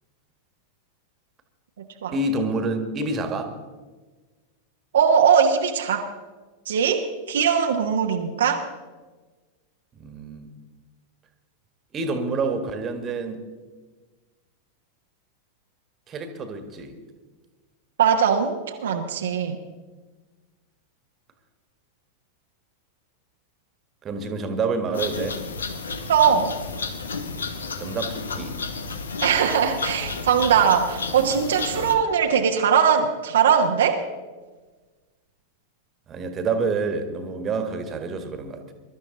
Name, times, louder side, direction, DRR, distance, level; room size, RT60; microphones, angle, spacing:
voice 1, 2.1-3.5 10.0-10.5 11.9-13.4 16.1-17.0 24.0-25.4 27.8-28.6 31.7-32.0 36.1-38.7, right 3 dB, 25° right, 7 dB, 1.7 m, -28 dB
voice 2, 4.9-6.1 6.7-8.6 18.0-19.6 26.1-26.5 29.2-34.0, right 7 dB, 65° right, 2 dB, 1.1 m, -20 dB
sound 1, 24.9-32.0, left 4 dB, 70° left, 1.2 m, -32 dB
22.0 x 12.5 x 4.0 m, 1.3 s
figure-of-eight pair, 90°, 0 cm